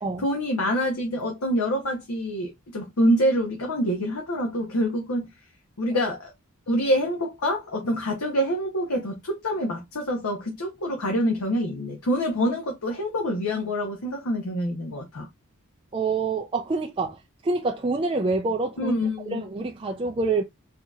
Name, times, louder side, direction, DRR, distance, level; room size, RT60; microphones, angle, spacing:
voice 1, 0.2-5.3 5.8-6.3 6.7-15.3 18.8-19.4, equal, 90° left, 0.9 m, -26 dB
voice 2, 15.9-17.2 17.4-18.9 19.3-20.4, right 3 dB, 25° right, 0.3 m, -26 dB
4.3 x 2.8 x 2.3 m
head